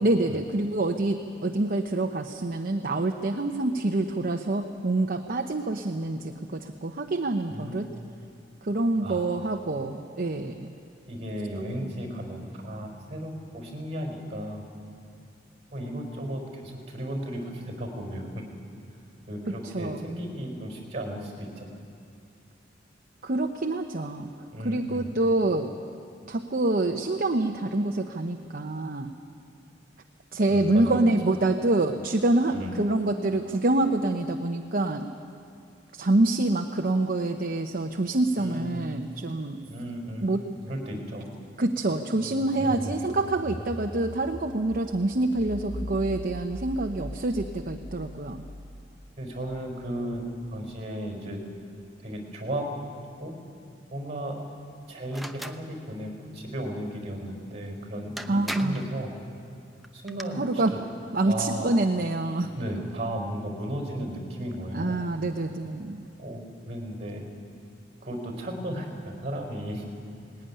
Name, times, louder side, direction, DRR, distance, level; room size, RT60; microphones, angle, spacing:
voice 1, 0.0-7.9 8.6-10.7 19.6-20.0 23.2-24.3 24.6-25.7 26.3-29.1 30.3-35.1 35.9-39.6 40.2-40.4 41.6-48.4 58.3-58.9 60.4-60.7 61.1-62.5 64.7-66.0, right 2 dB, 50° right, 4 dB, 0.9 m, -26 dB
voice 2, 7.5-8.1 9.0-9.2 11.1-14.7 15.7-18.4 19.3-21.7 24.5-25.1 30.5-31.0 32.5-32.7 38.4-38.8 39.7-40.3 40.7-41.2 42.5-43.0 49.2-50.2 50.5-51.4 52.0-52.7 53.2-53.3 53.9-54.4 54.9-59.1 59.9-60.5 60.7-60.8 61.3-61.7 62.5-65.0 66.2-67.2 68.0-69.8, right 1 dB, 35° right, 3 dB, 4.4 m, -35 dB
sound 1, 42.1-50.8, equal, 80° left, 2.7 m, -41 dB
sound 2, 55.1-55.6 57.7-57.8 58.2-58.9 59.8-60.2, equal, ahead, 0.8 m, -37 dB
19.5 x 17.0 x 10.0 m, 2.5 s
head